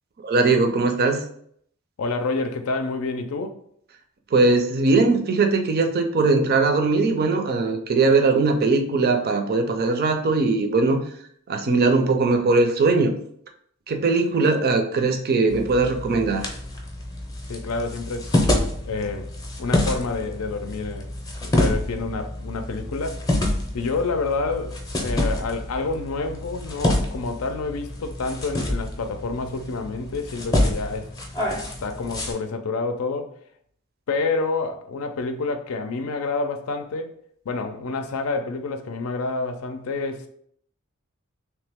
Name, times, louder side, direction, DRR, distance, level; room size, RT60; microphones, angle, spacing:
voice 1, 0.2-1.2 4.3-11.0 11.5-13.2 13.9-16.5, right 3 dB, 45° right, 0.5 m, -20 dB
voice 2, 2.0-3.6 17.5-18.4 18.9-19.3 19.6-21.1 21.4-23.2 23.7-31.1 31.8-33.3 34.1-37.1 37.5-40.3, left 3 dB, 75° left, 0.5 m, -28 dB
sound 1, 15.5-32.3, left 1 dB, 15° left, 0.6 m, -27 dB
3.2 x 2.9 x 3.4 m
head